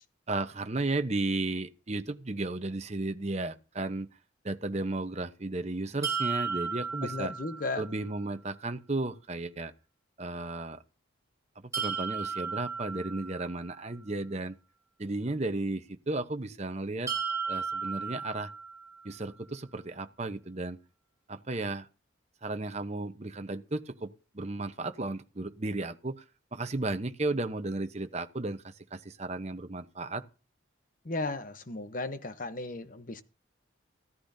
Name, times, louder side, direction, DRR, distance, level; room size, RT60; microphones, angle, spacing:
voice 1, 0.3-4.1 4.4-7.3 7.8-9.7 10.2-10.8 11.6-14.6 15.0-17.1 17.5-18.5 19.0-20.8 21.3-21.9 22.4-26.2 26.5-30.2, right 2 dB, 35° right, 0.9 m, -34 dB
sound 1, 6.0-8.0 11.7-13.8 17.1-19.1, right 5 dB, 15° right, 5.3 m, -35 dB
voice 2, 7.0-7.8 31.1-33.2, left 2 dB, 45° left, 1.0 m, -35 dB
15.0 x 14.0 x 2.7 m
head